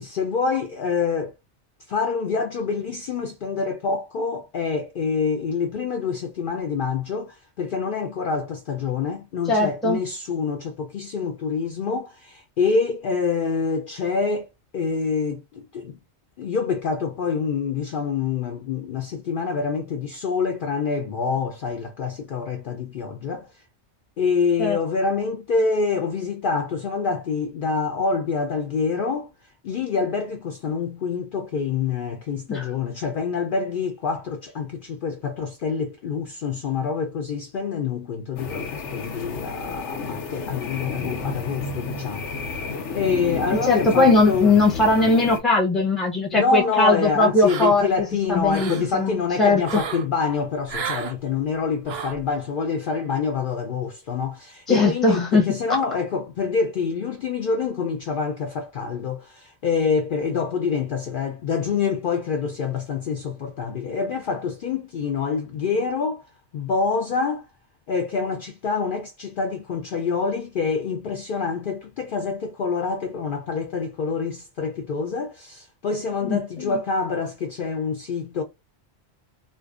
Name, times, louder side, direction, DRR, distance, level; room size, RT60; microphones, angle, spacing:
voice 1, 0.0-1.3 1.9-14.5 14.7-16.0 16.4-23.5 24.2-29.3 29.6-44.5 46.3-66.2 66.5-67.5 67.9-78.4, left 5 dB, 60° left, 0.6 m, -26 dB
voice 2, 9.5-10.0 24.6-24.8 32.5-32.7 43.7-49.8 54.7-55.4 76.2-76.8, left 3 dB, ahead, 0.6 m, -20 dB
sound 1, 38.4-45.4, left 4 dB, 90° left, 1.0 m, -31 dB
sound 2, 47.5-48.0 48.3-48.9 49.6-50.1 50.7-51.1 51.9-52.2, right 7 dB, 65° right, 0.7 m, -32 dB
2.5 x 2.2 x 2.3 m
omnidirectional pair, 1.2 m